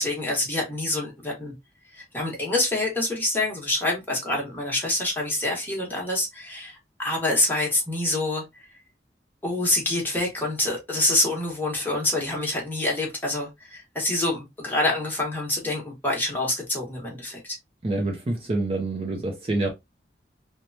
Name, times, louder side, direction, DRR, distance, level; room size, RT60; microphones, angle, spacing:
voice 1, 0.0-1.5 2.0-8.4 9.4-17.6, left 2 dB, 10° left, 1.1 m, -26 dB
voice 2, 17.8-19.7, right 2 dB, 35° right, 0.5 m, -27 dB
3.1 x 2.1 x 2.6 m
head